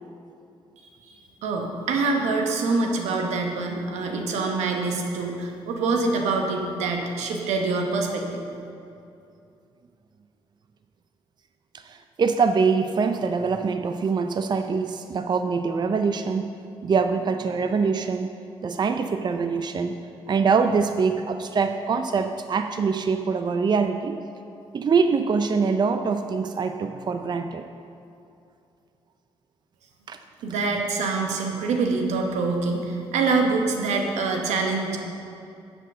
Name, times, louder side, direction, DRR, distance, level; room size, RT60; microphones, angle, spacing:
voice 1, 1.4-8.4 30.4-35.0, right 3 dB, 85° right, 2 dB, 1.0 m, -25 dB
voice 2, 11.8-16.5 16.8-18.3 18.6-20.0 20.3-24.2 24.7-27.6 30.1-30.2, right 5 dB, 40° right, 8 dB, 0.4 m, -24 dB
9.7 x 4.5 x 6.7 m, 2.6 s
supercardioid pair, 60°, 11 cm